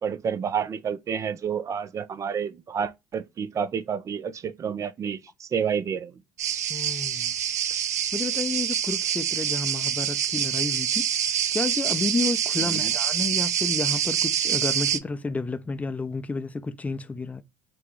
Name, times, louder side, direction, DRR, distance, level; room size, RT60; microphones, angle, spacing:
voice 1, 0.0-6.1 12.6-12.9, right 7 dB, 40° right, 0.6 m, -29 dB
sound 1, 6.4-15.0, right 9 dB, 90° right, 0.4 m, -26 dB
voice 2, 6.7-7.3 8.1-11.1 11.5-17.4, left 3 dB, 15° left, 0.6 m, -31 dB
6.0 x 2.3 x 3.0 m
hypercardioid pair, 65°, 8 cm